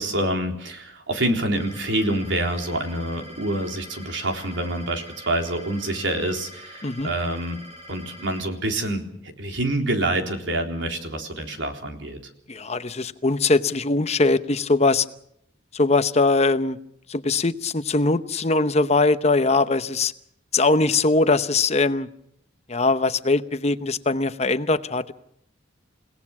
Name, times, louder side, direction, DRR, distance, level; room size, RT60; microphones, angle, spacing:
voice 1, 0.0-7.6 7.9-12.2, right 1 dB, 75° right, 4 dB, 3.8 m, -27 dB
sound 1, 1.6-8.4, equal, 35° right, 5.6 m, -44 dB
voice 2, 12.5-15.1 15.7-16.8 17.1-20.1 20.5-22.1 22.7-25.1, left 3 dB, 35° left, 11 dB, 0.9 m, -21 dB
29.5 x 18.0 x 6.0 m, 0.72 s
head